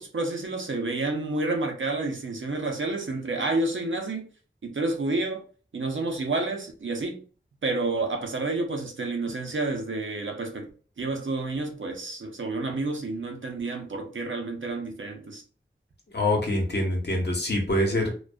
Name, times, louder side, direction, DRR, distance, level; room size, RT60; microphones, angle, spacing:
voice 1, 0.0-4.3 4.6-5.4 5.7-7.2 7.6-10.7 11.0-15.4, right 2 dB, 80° right, 0.6 m, -29 dB
voice 2, 16.1-18.1, left 1 dB, 60° left, 0.8 m, -25 dB
2.5 x 2.2 x 2.2 m
wide cardioid pair, 55°, 20 cm